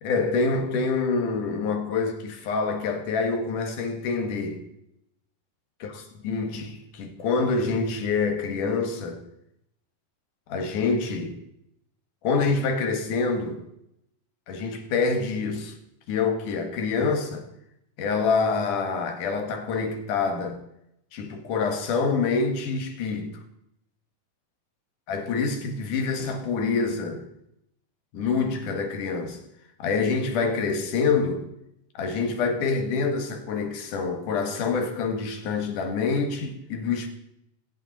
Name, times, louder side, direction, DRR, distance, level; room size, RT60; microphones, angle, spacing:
voice 1, 0.0-4.6 5.8-9.2 10.5-11.4 12.2-13.6 14.5-15.7 16.1-17.5 18.0-20.6 21.1-23.3 25.1-27.2 28.1-29.4 29.8-31.4 31.9-37.1, left 4 dB, 70° left, 3.2 m, -26 dB
23.0 x 8.3 x 4.1 m
omnidirectional pair, 3.8 m